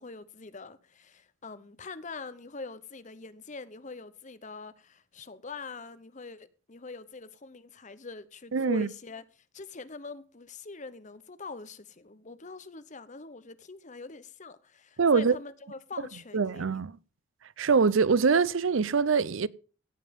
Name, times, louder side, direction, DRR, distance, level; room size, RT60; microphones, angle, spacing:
voice 1, 0.0-16.8, left 4 dB, 35° left, 0.9 m, -44 dB
voice 2, 8.5-8.9 15.0-15.4 16.3-17.0 17.6-19.5, right 5 dB, 70° right, 0.6 m, -24 dB
16.5 x 7.6 x 5.3 m
head